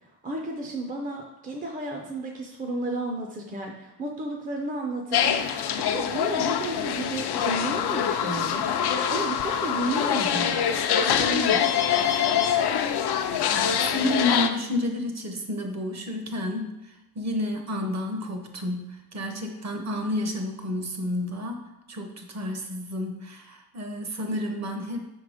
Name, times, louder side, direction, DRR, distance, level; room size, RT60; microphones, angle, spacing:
voice 1, 0.2-5.5 5.9-8.7 9.1-11.7, right 2 dB, 20° right, 1 dB, 0.5 m, -32 dB
sound 1, 5.1-14.5, left 8 dB, 80° left, 0.5 m, -24 dB
voice 2, 13.5-16.7 17.1-25.1, left 1 dB, 45° right, 4 dB, 0.8 m, -30 dB
5.5 x 3.7 x 4.9 m, 0.95 s
wide cardioid pair, 180°, 38 cm